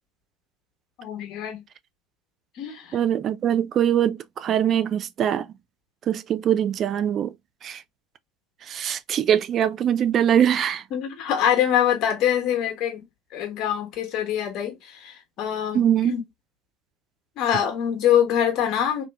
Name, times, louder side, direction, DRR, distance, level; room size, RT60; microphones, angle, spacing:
voice 1, 1.0-1.6 2.6-3.0 10.9-13.0 13.3-16.2 17.4-19.0, left 9 dB, 50° left, 1.0 m, -24 dB
voice 2, 2.9-5.5 6.1-7.3 7.6-7.8 8.7-10.8 15.7-16.1, right 9 dB, 40° right, 0.3 m, -22 dB
2.6 x 2.4 x 2.2 m
figure-of-eight pair, 70°, 0 cm